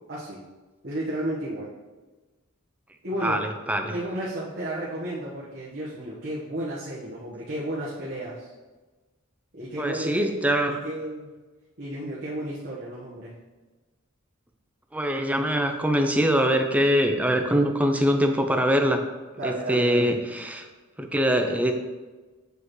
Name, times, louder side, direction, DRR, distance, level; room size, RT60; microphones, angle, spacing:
voice 1, 0.1-0.4 0.8-1.7 3.0-3.4 3.9-8.5 9.5-10.4 10.7-11.3 11.8-13.3 19.4-20.1, right 1 dB, 55° right, -8 dB, 1.3 m, -33 dB
voice 2, 3.2-3.9 9.8-10.7 14.9-19.0 19.4-20.7 21.0-21.7, equal, 5° right, 4 dB, 0.5 m, -23 dB
8.1 x 5.0 x 3.1 m, 1.3 s
head